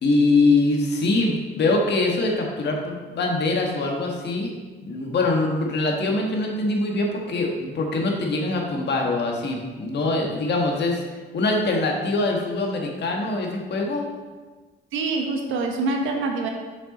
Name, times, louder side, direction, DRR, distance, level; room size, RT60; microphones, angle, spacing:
voice 1, 0.0-4.5 4.8-11.0 11.3-14.0, left 2 dB, 60° left, 1 dB, 1.5 m, -23 dB
voice 2, 14.9-16.5, right 3 dB, 85° right, 3 dB, 1.1 m, -25 dB
6.5 x 6.0 x 4.2 m, 1.4 s
cardioid pair, 90°, 20 cm